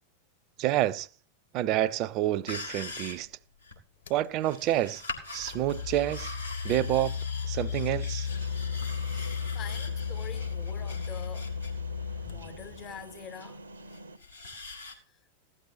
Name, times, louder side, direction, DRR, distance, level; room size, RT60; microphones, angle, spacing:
voice 1, 0.6-1.1 1.5-3.3 4.1-5.0 5.3-6.3 6.6-7.2 7.5-8.3, right 14 dB, 40° right, 0.4 m, -28 dB
sound 1, 2.5-3.8 4.4-11.7 12.1-12.2 13.6-14.9, left 3 dB, 90° left, 2.7 m, -42 dB
sound 2, 4.1-4.3 5.2-13.2, left 6 dB, 65° left, 1.4 m, -34 dB
sound 3, 8.3-14.2, right 2 dB, 75° right, 0.7 m, -47 dB
voice 2, 9.1-11.5 12.2-13.6, left 9 dB, 30° left, 0.5 m, -45 dB
16.5 x 12.0 x 2.7 m
figure-of-eight pair, 90°, 0 cm